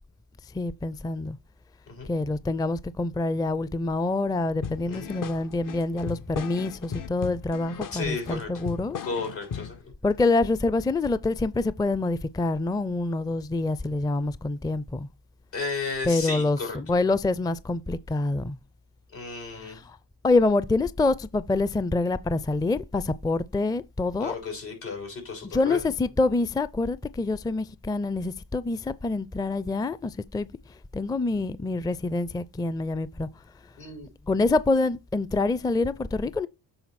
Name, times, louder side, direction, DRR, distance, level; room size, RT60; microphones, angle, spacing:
voice 1, 0.5-1.4 2.1-9.0 10.0-15.1 16.1-18.6 19.6-20.0 20.2-24.3 25.5-30.5 30.9-33.3 34.3-36.5, left 3 dB, 10° left, 0.4 m, -26 dB
sound 1, 4.6-9.8, left 7 dB, 50° left, 0.7 m, -37 dB
voice 2, 7.9-8.5 9.0-9.9 15.5-16.9 19.1-19.8 24.2-25.9 33.7-34.1, left 4 dB, 80° left, 3.4 m, -34 dB
7.8 x 4.0 x 4.2 m
supercardioid pair, 40°, 43 cm